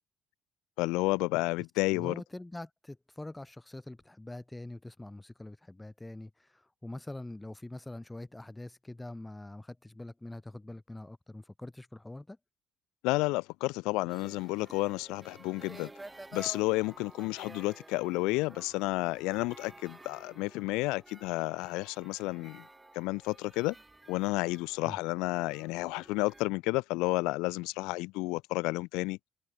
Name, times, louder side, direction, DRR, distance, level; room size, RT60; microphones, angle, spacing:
voice 1, 0.8-2.1 13.0-15.9 16.3-22.6 22.9-23.7 24.1-29.2, left 23 dB, 90° left, 1.1 m, -31 dB
voice 2, 1.9-12.4 24.9-25.0, left 2 dB, 10° left, 5.1 m, -44 dB
sound 1, 14.1-26.4, right 2 dB, 15° right, 3.0 m, -52 dB
supercardioid pair, 80°, 0 cm